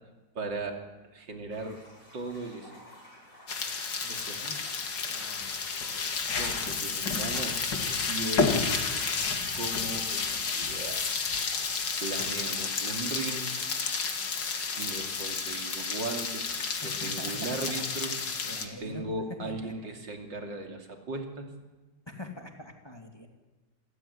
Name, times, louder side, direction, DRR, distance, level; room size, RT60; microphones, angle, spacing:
voice 1, 0.4-0.8 1.1-1.8 2.1-2.8 4.1-4.6 6.3-7.6 8.1-8.6 9.5-11.1 12.0-13.5 14.8-16.5 16.8-21.5, right 2 dB, 85° right, 4 dB, 3.5 m, -37 dB
sound 1, 1.5-15.1, left 1 dB, 45° left, 8.2 m, -53 dB
sound 2, 3.5-18.7, left 5 dB, 75° left, 2.7 m, -31 dB
voice 2, 4.0-4.6 5.1-5.5 16.8-17.8 18.4-19.1 19.4-19.7 22.1-23.3, left 1 dB, 15° left, 3 dB, 2.3 m, -43 dB
27.5 x 15.5 x 9.9 m, 1.2 s
omnidirectional pair, 1.9 m